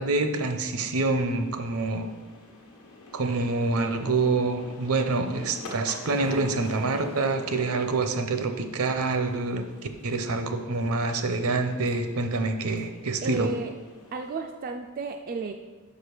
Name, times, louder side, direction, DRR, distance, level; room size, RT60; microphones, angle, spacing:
voice 1, 0.0-2.1 3.1-9.6 10.0-13.5, right 3 dB, 75° right, 7 dB, 0.7 m, -26 dB
sound 1, 1.0-14.5, left 2 dB, 70° left, 1.1 m, -45 dB
voice 2, 13.2-13.7 14.1-15.5, right 3 dB, 40° right, 5 dB, 0.3 m, -32 dB
5.4 x 5.0 x 6.4 m, 1.3 s
head